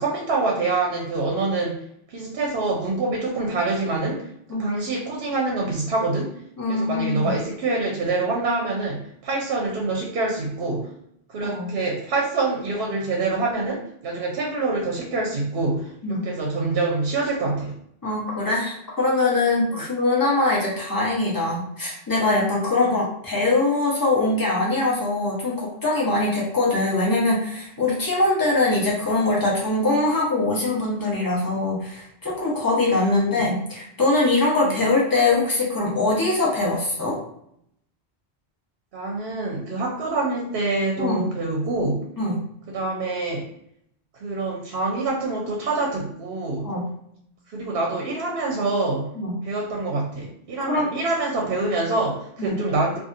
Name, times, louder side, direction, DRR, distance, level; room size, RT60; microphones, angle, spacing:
voice 1, 0.0-6.4 6.7-10.9 11.3-17.8 19.7-19.9 22.9-23.0 33.0-33.5 34.6-34.8 38.9-42.1 42.7-43.5 44.2-46.7 47.5-49.1 49.4-53.0, right 3 dB, 70° right, -1 dB, 0.8 m, -26 dB
voice 2, 6.6-7.3 11.4-11.7 16.0-16.3 18.0-37.2 41.0-41.3 42.2-42.4 46.6-46.9 49.1-49.4 50.7-50.9 52.4-52.6, left 2 dB, 20° left, -5 dB, 0.7 m, -22 dB
2.7 x 2.4 x 2.5 m, 0.72 s
omnidirectional pair, 1.1 m